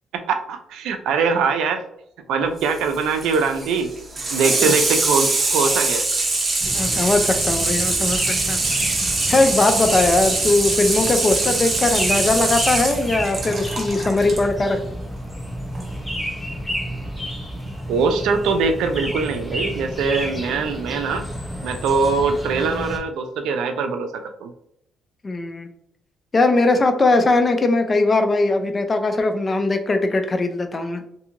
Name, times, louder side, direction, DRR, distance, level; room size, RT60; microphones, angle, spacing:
voice 1, 0.1-1.8 2.3-3.9 4.3-6.1 6.8-7.0 17.9-21.2 21.6-24.5, right 4 dB, 85° right, 7 dB, 0.4 m, -22 dB
Water tap faucet / Sink (filling or washing), 2.6-14.4 15.8-15.9, right 2 dB, 35° right, 0.7 m, -23 dB
sound 1, 6.6-23.0, equal, 5° left, 0.8 m, -31 dB
voice 2, 6.7-8.2 8.5-8.6 9.3-14.8 25.2-25.7 26.3-31.0, left 2 dB, 30° left, 6 dB, 0.4 m, -20 dB
2.7 x 2.6 x 2.5 m, 0.75 s
cardioid pair, 90°, 0 cm